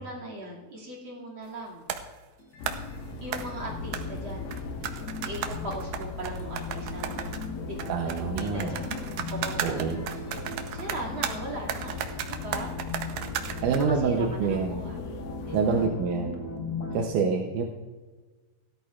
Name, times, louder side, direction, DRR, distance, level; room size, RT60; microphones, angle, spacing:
voice 1, 0.0-1.8 3.2-4.5 5.2-7.3 7.6-12.7 13.8-15.9 16.9-17.3, right 1 dB, 40° right, -1 dB, 2.9 m, -39 dB
sound 1, 1.9-2.1 2.7-2.9 3.3-3.5 3.9-4.0 4.5-7.5 7.8-11.4 11.7-13.8, right 9 dB, 90° right, 2.5 m, -34 dB
sound 2, 2.4-17.0, left 3 dB, 65° left, 1.1 m, -39 dB
sound 3, 2.6-15.9, left 5 dB, 85° left, 2.6 m, -40 dB
voice 2, 7.9-8.7 9.6-10.0 13.6-14.8 15.5-16.4 16.9-17.6, right 5 dB, 75° right, 1 dB, 2.2 m, -26 dB
17.0 x 13.5 x 2.5 m, 1.3 s
omnidirectional pair, 3.9 m